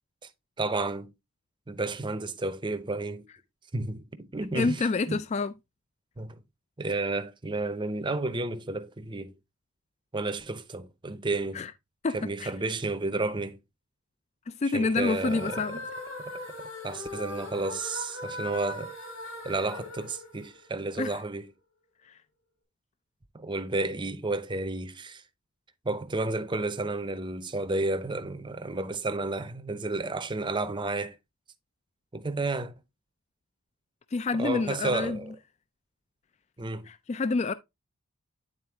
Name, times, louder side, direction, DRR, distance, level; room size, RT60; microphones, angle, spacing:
voice 1, 0.6-1.1 1.7-3.2 3.7-5.2 6.2-6.4 6.8-9.3 10.1-11.6 12.1-13.6 14.6-15.8 16.2-16.4 16.8-18.9 19.4-21.5 23.3-25.2 25.8-31.2 32.1-32.7 34.3-35.3 36.6-36.9, right 2 dB, 20° right, 0.6 m, -31 dB
voice 2, 4.5-5.5 11.5-11.7 12.0-12.5 14.5-15.8 21.0-21.2 34.1-35.2 36.9-37.5, left 3 dB, 30° left, 0.3 m, -28 dB
sound 1, 15.0-21.1, left 2 dB, 70° left, 4.5 m, -40 dB
9.4 x 3.9 x 3.4 m
head